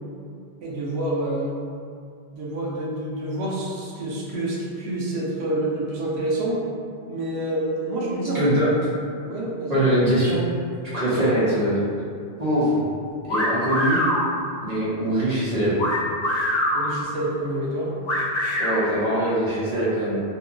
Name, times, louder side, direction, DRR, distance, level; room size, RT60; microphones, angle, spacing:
voice 1, 0.6-1.5 2.3-6.6 7.1-8.5 9.2-9.9 16.7-17.9, right 1 dB, 85° right, -4 dB, 0.9 m, -28 dB
voice 2, 8.3-8.7 9.7-10.4 10.9-11.8 12.4-12.8 13.2-14.0 14.6-15.8 18.6-20.2, right 1 dB, 45° right, -10 dB, 0.7 m, -22 dB
sound 1, 13.3-14.2 15.8-16.8 18.1-18.8, equal, 60° left, 0.7 m, -23 dB
2.8 x 2.2 x 2.4 m, 2.3 s
omnidirectional pair, 1.1 m